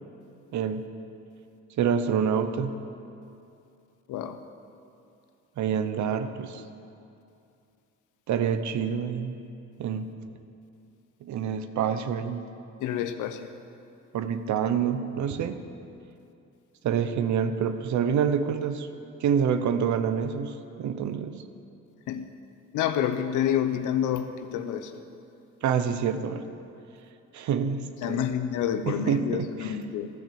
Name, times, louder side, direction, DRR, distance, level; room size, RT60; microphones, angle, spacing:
voice 1, 0.5-0.9 1.8-2.8 5.6-6.6 8.3-9.4 9.8-10.1 11.2-12.5 14.1-15.6 16.8-18.9 19.2-21.4 25.6-26.5 27.3-28.3 28.9-29.8, right 7 dB, 70° right, 10 dB, 0.8 m, -27 dB
voice 2, 12.8-13.5 22.1-22.3 22.7-24.9 28.0-30.1, left 9 dB, 85° left, 9 dB, 0.8 m, -28 dB
14.0 x 6.0 x 7.0 m, 2.6 s
cardioid pair, 90°, 30 cm